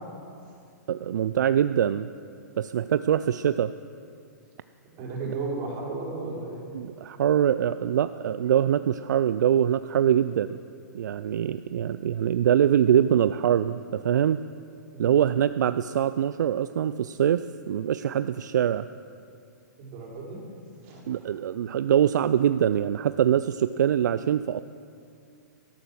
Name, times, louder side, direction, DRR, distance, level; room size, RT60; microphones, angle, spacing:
voice 1, 0.9-2.1 2.6-3.7 6.7-10.6 10.9-14.4 15.0-18.9 21.1-24.6, right 9 dB, 70° right, 13 dB, 0.4 m, -23 dB
voice 2, 5.0-6.6 14.9-15.2 19.8-20.4 20.8-21.2, right 3 dB, 35° right, -3 dB, 4.5 m, -34 dB
13.0 x 11.5 x 6.3 m, 2.4 s
hypercardioid pair, 135°, 10 cm